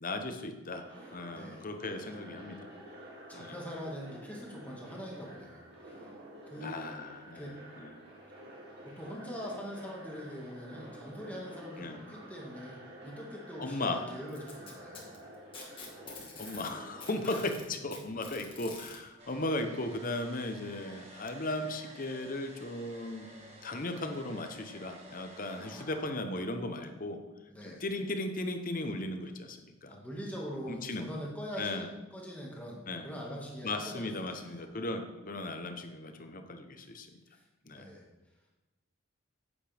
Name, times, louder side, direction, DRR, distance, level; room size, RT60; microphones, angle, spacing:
voice 1, 0.0-0.8 1.1-2.7 3.3-3.5 6.6-7.5 7.8-7.9 11.8-12.0 13.6-14.0 16.0-23.3 23.6-27.2 27.7-30.0 30.7-31.1 31.6-31.9 32.9-33.1 33.6-37.1 37.7-37.9, left 2 dB, 40° left, 6 dB, 0.9 m, -36 dB
sound 1, 0.8-17.4, right 1 dB, 55° right, 2.7 m, -50 dB
voice 2, 1.3-1.7 2.1-2.2 3.3-6.1 6.5-6.8 7.3-7.6 8.8-15.2 17.2-17.4 23.3-23.8 25.6-26.1 27.5-27.8 29.8-34.7 37.3-38.1, equal, 5° left, -3 dB, 1.8 m, -43 dB
Packing tape duct tape, 14.3-16.7 17.0-19.0 20.1-20.2 20.7-20.8 21.7-21.8, left 4 dB, 25° left, 1.8 m, -47 dB
Domestic sounds home sounds, 19.2-25.9, right 1 dB, 30° right, 1.6 m, -52 dB
9.8 x 8.7 x 3.5 m, 1.1 s
head